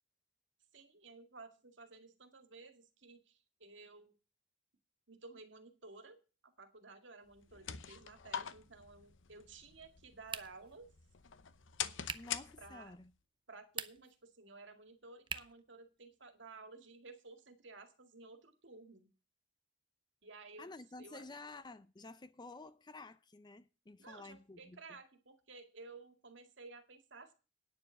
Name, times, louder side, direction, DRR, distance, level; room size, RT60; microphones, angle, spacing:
voice 1, 0.7-4.1 5.1-6.2 6.4-10.9 12.6-13.0 13.5-19.1 20.2-20.7 21.0-21.3 24.0-27.3, right 3 dB, 70° right, 2.1 m, -55 dB
sound 1, 7.3-13.0, left 9 dB, 80° left, 0.8 m, -45 dB
sound 2, 10.3-10.8 12.0-12.4 13.6-14.2 15.3-15.7, right 6 dB, 25° right, 0.6 m, -43 dB
voice 2, 12.1-13.1 20.6-25.0, left 3 dB, 25° left, 0.5 m, -52 dB
9.8 x 7.1 x 7.6 m
head